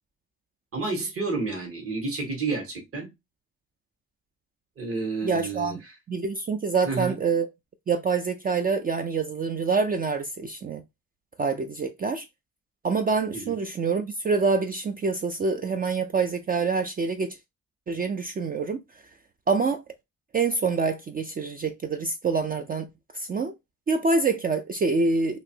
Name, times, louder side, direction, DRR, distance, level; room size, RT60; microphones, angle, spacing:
voice 1, 0.7-3.1 4.8-5.7 6.8-7.2 13.3-13.5, right 3 dB, 50° right, 1.5 m, -30 dB
voice 2, 5.2-5.8 6.1-7.5 7.9-10.8 11.4-12.3 12.8-17.4 17.9-18.8 19.5-19.8 20.3-22.9 23.1-23.5 23.9-25.4, right 4 dB, 30° right, 0.4 m, -26 dB
3.0 x 2.6 x 2.7 m
cardioid pair, 90°, 30 cm